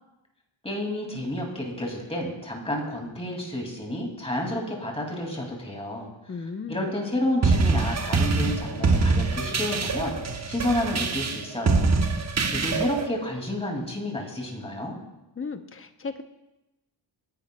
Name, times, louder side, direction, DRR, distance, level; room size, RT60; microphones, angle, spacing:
voice 1, 0.6-6.1 6.7-12.0 12.5-15.0, left 1 dB, 15° left, 0 dB, 2.3 m, -30 dB
voice 2, 6.3-6.8 15.4-16.2, left 4 dB, 30° left, 8 dB, 0.7 m, -35 dB
sound 1, 7.4-13.1, right 3 dB, 35° right, 0.9 m, -24 dB
28.0 x 10.5 x 2.2 m, 0.96 s
wide cardioid pair, 165°, 45 cm